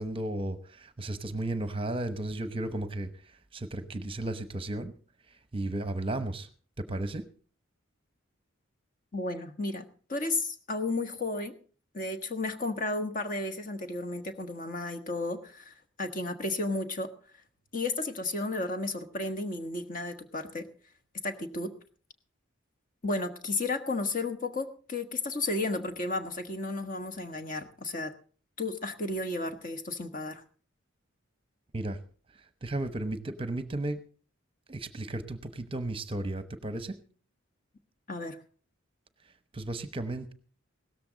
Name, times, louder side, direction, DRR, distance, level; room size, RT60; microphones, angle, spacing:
voice 1, 0.0-4.9 5.3-6.5 6.8-7.2 31.7-32.0 32.3-34.0 34.7-37.0 39.5-40.3, right 2 dB, 25° right, 10 dB, 0.9 m, -34 dB
voice 2, 9.1-11.5 11.9-17.1 17.7-20.6 21.2-21.7 23.0-28.1 28.6-30.4 38.1-38.4, left 2 dB, 40° left, 7 dB, 1.3 m, -33 dB
17.0 x 13.5 x 3.9 m, 0.41 s
head